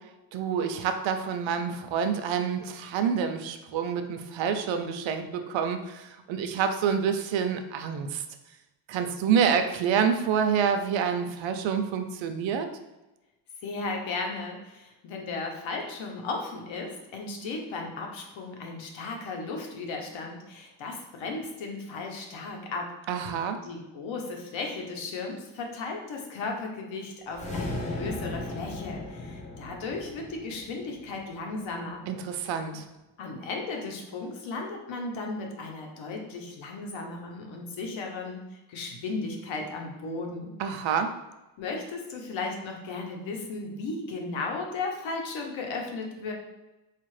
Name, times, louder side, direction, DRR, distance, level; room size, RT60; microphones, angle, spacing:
voice 1, 0.3-8.2 8.9-12.7 23.1-23.6 32.1-32.8 40.6-41.1, right 7 dB, 80° right, 7 dB, 0.5 m, -27 dB
voice 2, 13.6-22.9 23.6-32.0 33.2-38.4 38.7-40.5 40.8-41.0 41.6-46.3, left 3 dB, 85° left, 1 dB, 0.9 m, -35 dB
sound 1, 27.3-31.7, left 2 dB, 15° left, 0.7 m, -36 dB
4.6 x 2.4 x 3.1 m, 1.0 s
cardioid pair, 125°, 46 cm